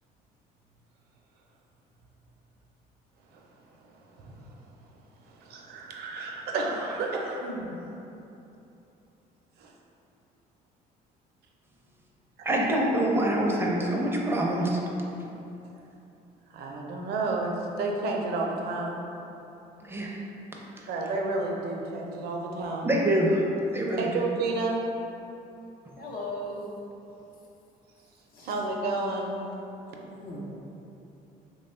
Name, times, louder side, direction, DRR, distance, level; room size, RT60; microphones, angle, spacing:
voice 1, 5.4-7.8 9.6-9.7 16.5-19.0 20.9-22.9 24.0-24.8 28.4-29.4, right 3 dB, 70° right, 0 dB, 0.5 m, -31 dB
voice 2, 12.4-14.8 19.8-20.1 20.7-20.9 22.8-23.4 23.7-24.2, right 1 dB, 15° right, -2 dB, 0.5 m, -25 dB
voice 3, 26.0-26.7 28.3-28.5 30.1-30.4, left 1 dB, 60° left, -3 dB, 0.7 m, -37 dB
3.1 x 2.2 x 4.2 m, 2.9 s
cardioid pair, 110°, 17 cm